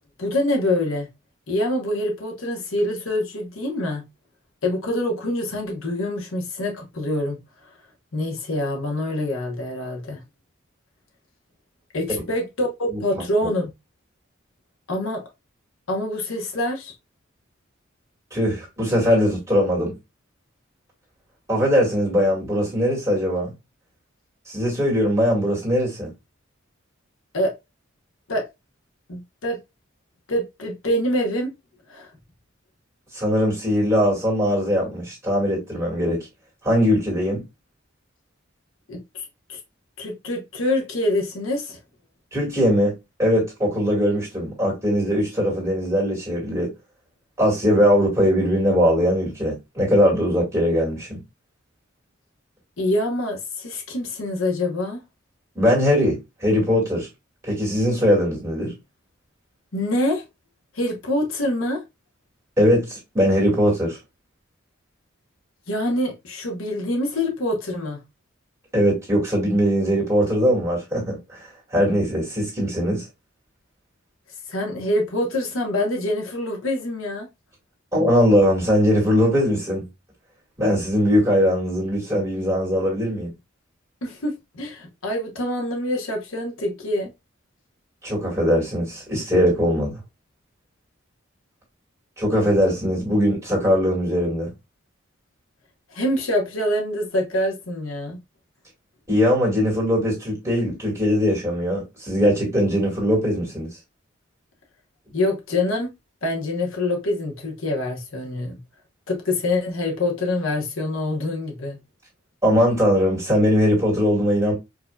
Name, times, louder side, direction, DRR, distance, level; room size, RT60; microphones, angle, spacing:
voice 1, 0.2-1.1 1.5-4.0 4.6-7.4 8.1-10.2 11.9-13.7 14.9-15.2 15.9-16.9 27.3-27.5 28.3-28.5 29.1-29.6 30.3-31.5 31.9-32.1 38.9-39.6 40.0-41.8 52.8-55.0 59.7-60.2 60.7-61.8 65.7-68.0 74.5-77.3 84.0-87.1 95.9-98.2 105.1-105.9 106.2-108.6 109.1-111.8, left 1 dB, 80° left, 1.0 m, -25 dB
voice 2, 12.9-13.2 18.3-19.9 21.5-23.5 24.5-26.1 33.1-36.3 36.6-37.4 42.3-46.7 47.4-51.2 55.6-57.1 57.4-58.7 62.6-64.0 68.7-71.4 71.7-73.0 77.9-79.8 80.6-83.3 88.0-90.0 92.2-94.5 99.1-103.7 112.4-114.5, equal, 15° right, 2.0 m, -20 dB
4.7 x 2.7 x 2.2 m
head